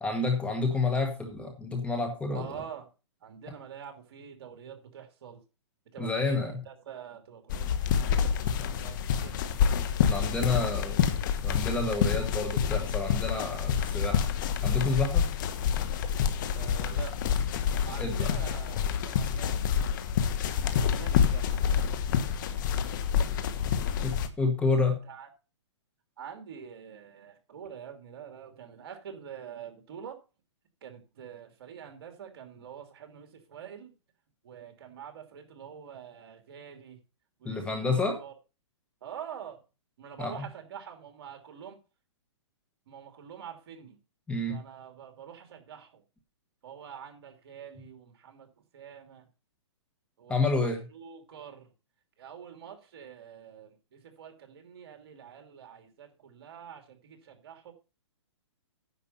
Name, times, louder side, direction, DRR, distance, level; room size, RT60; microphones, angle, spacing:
voice 1, 0.0-2.6 6.0-6.6 10.1-11.0 11.4-14.3 14.6-15.3 17.9-18.4 24.0-25.0 37.4-38.2 40.2-40.3 44.3-44.6 50.3-50.9, left 3 dB, 5° left, 1.3 m, -29 dB
voice 2, 2.3-2.9 3.2-5.4 5.9-7.8 8.1-9.4 16.5-17.2 17.8-19.5 20.7-21.7 25.0-25.3 26.2-30.2 30.8-33.9 34.4-37.0 37.4-38.3 39.0-39.6 40.0-41.8 42.9-44.0 44.5-46.0 46.6-49.3 50.2-51.7 52.2-57.7, right 8 dB, 55° right, 2.8 m, -46 dB
sound 1, 7.5-24.3, left 7 dB, 40° left, 1.2 m, -28 dB
10.0 x 7.0 x 5.4 m
hypercardioid pair, 155°, 15 cm